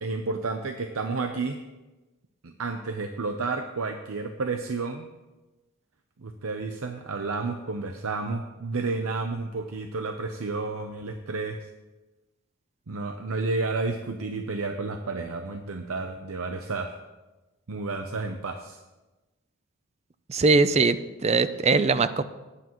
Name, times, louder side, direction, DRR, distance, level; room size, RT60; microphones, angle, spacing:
voice 1, 0.0-1.6 2.4-5.1 6.2-11.6 12.9-17.0 17.7-18.8, right 3 dB, 75° right, 6 dB, 0.7 m, -31 dB
voice 2, 20.3-21.0 21.2-22.2, right 3 dB, 30° right, 13 dB, 0.5 m, -21 dB
17.0 x 9.9 x 3.0 m, 1.1 s
head